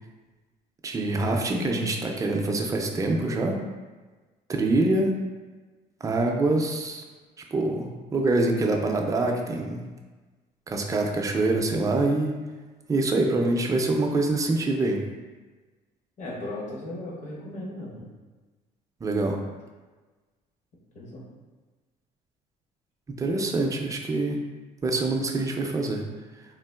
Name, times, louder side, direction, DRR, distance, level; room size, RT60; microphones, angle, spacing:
voice 1, 0.8-3.6 4.5-5.1 6.0-7.0 7.5-9.8 10.7-12.4 12.9-15.0 19.0-19.4 23.1-24.4 24.8-26.1, right 2 dB, 20° right, 1 dB, 0.4 m, -25 dB
voice 2, 16.2-18.1 20.9-21.3, left 1 dB, 45° left, -4 dB, 0.9 m, -36 dB
3.6 x 2.4 x 2.3 m, 1.3 s
cardioid pair, 110°, 17 cm